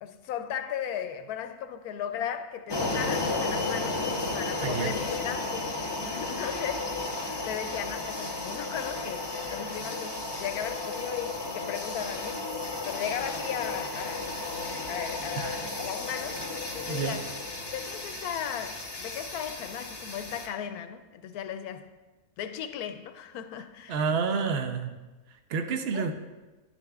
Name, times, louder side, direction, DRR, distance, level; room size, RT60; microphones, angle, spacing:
voice 1, 0.0-4.0 4.3-5.7 6.0-6.9 7.4-12.4 12.8-14.6 14.9-16.4 16.7-17.3 17.7-21.9 22.4-24.0 25.9-26.1, left 9 dB, 90° left, 1.1 m, -36 dB
sound 1, 2.7-20.5, left 2 dB, 25° left, 0.6 m, -33 dB
voice 2, 4.6-4.9 15.4-15.6 16.9-17.2 23.9-25.0 25.5-26.1, right 5 dB, 55° right, 0.8 m, -29 dB
10.5 x 9.8 x 2.4 m
omnidirectional pair, 1.6 m